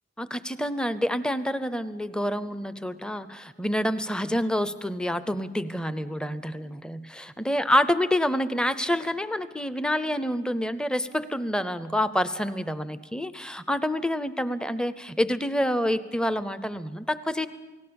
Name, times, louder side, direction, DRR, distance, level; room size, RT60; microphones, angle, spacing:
voice 1, 0.2-17.5, left 1 dB, 5° left, 13 dB, 0.6 m, -27 dB
28.5 x 19.0 x 7.0 m, 1.3 s
head